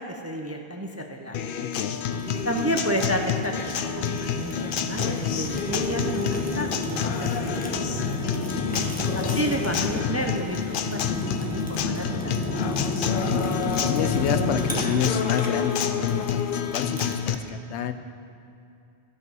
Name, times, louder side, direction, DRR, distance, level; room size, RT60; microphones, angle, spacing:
voice 1, 0.0-1.4 2.4-7.4 7.7-8.1 9.1-12.4, equal, 25° right, 3 dB, 0.4 m, -31 dB
Acoustic guitar, 1.3-17.4, left 7 dB, 60° left, 0.6 m, -29 dB
voice 2, 1.6-2.0 8.4-8.9 13.0-16.3 16.5-17.9, left 8 dB, 85° left, 10 dB, 0.9 m, -29 dB
Fire, 2.1-17.3, left 1 dB, 10° left, 1.2 m, -32 dB
13.5 x 5.4 x 6.2 m, 2.5 s
omnidirectional pair, 1.1 m